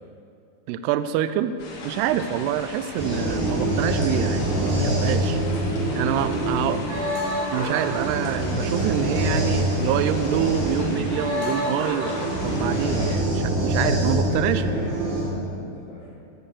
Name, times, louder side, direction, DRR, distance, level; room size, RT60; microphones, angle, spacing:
voice 1, 0.7-1.6 1.8-5.4 6.0-6.8 7.5-14.6, right 10 dB, 85° right, 12 dB, 2.3 m, -26 dB
sound 1, 1.6-13.2, left 2 dB, 75° left, 5.0 m, -40 dB
sound 2, 3.0-15.2, right 1 dB, 70° right, 4.6 m, -25 dB
voice 2, 6.5-6.8 14.3-16.1, left 1 dB, 45° left, -13 dB, 5.3 m, -39 dB
14.0 x 7.9 x 7.0 m, 2.5 s
omnidirectional pair, 5.2 m